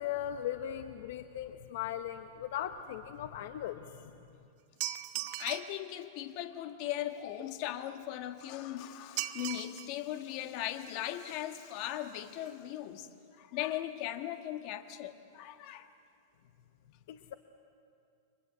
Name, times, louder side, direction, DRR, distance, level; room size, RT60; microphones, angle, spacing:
voice 1, 0.0-4.2 17.1-17.3, left 10 dB, 65° left, 8 dB, 1.0 m, -38 dB
sound 1, 4.8-5.8 9.2-9.9 10.3-10.4 11.2-11.3 11.6-11.7 12.0-12.2 12.5-12.6, right 15 dB, 50° right, 1.1 m, -38 dB
voice 2, 5.1-13.1 13.3-15.9, left 12 dB, 40° left, 7 dB, 1.6 m, -38 dB
29.5 x 24.5 x 8.0 m, 2.5 s
supercardioid pair, 160°, 0 cm